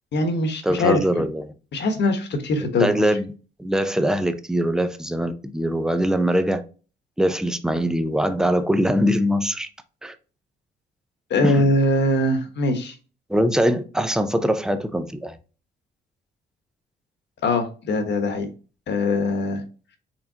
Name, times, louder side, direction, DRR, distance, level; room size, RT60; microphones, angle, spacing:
voice 1, 0.1-1.2 1.7-3.0 11.3-12.9 17.4-18.5 18.9-19.6, left 2 dB, 60° left, 1.2 m, -22 dB
voice 2, 0.6-1.5 2.8-3.3 3.6-6.6 7.2-9.7 10.0-10.1 11.4-11.7 13.3-15.4, equal, 5° right, 0.6 m, -22 dB
4.6 x 3.6 x 2.8 m
cardioid pair, 90°, 20 cm